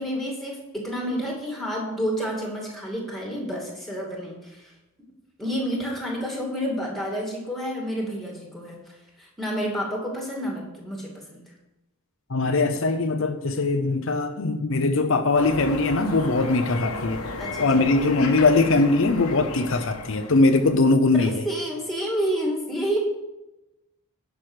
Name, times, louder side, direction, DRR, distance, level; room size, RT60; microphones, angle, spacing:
voice 1, 0.0-4.7 5.4-11.4 17.4-17.6 21.1-23.0, equal, ahead, -1 dB, 2.5 m, -29 dB
voice 2, 12.3-17.2 17.6-21.5, left 3 dB, 65° left, 7 dB, 0.7 m, -21 dB
sound 1, 15.3-21.0, left 3 dB, 85° left, 1.3 m, -34 dB
11.0 x 6.2 x 6.3 m, 0.98 s
head